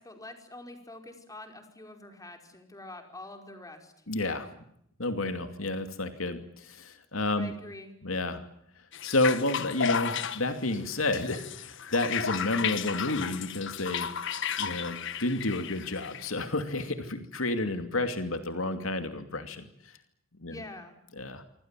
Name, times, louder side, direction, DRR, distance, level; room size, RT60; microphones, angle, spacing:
voice 1, 0.0-4.0 7.4-7.9 20.5-21.0, left 2 dB, 15° left, 5 dB, 5.2 m, -46 dB
voice 2, 4.1-4.5 5.0-7.5 8.0-8.4 9.0-14.1 14.6-19.7 20.4-20.6 21.2-21.4, left 2 dB, 80° left, 8 dB, 2.6 m, -30 dB
sound 1, 8.9-16.3, left 7 dB, 65° left, 1.6 m, -33 dB
27.0 x 25.0 x 7.6 m, 0.74 s
head